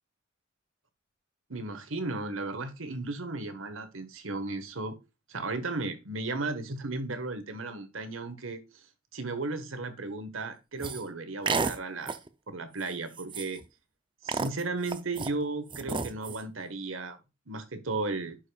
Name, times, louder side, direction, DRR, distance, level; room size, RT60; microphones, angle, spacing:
voice 1, 1.5-4.9 5.3-8.8 9.1-12.2 12.5-13.6 14.2-17.2 17.5-18.4, right 3 dB, 80° right, 1.5 m, -35 dB
sound 1, 10.8-11.0 11.5-11.8 12.1-12.3 12.8-12.9 13.2-13.6 14.3-15.3 15.7-16.4, right 4 dB, 25° right, 0.6 m, -31 dB
11.0 x 5.3 x 2.4 m
head